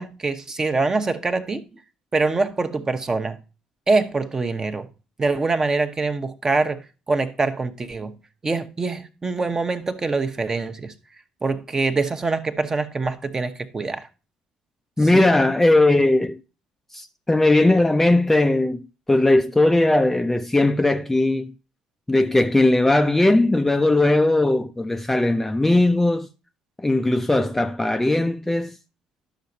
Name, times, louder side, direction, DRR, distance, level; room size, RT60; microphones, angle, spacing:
voice 1, 0.0-1.6 2.1-3.4 3.9-4.9 5.2-6.8 7.1-8.1 8.4-10.9 11.4-14.1 15.1-15.3, right 3 dB, 25° right, 1.0 m, -24 dB
voice 2, 15.0-16.4 16.9-21.5 22.1-26.3 26.8-28.8, left 2 dB, 10° left, 0.5 m, -19 dB
11.5 x 6.5 x 2.7 m
figure-of-eight pair, 55°, 2 cm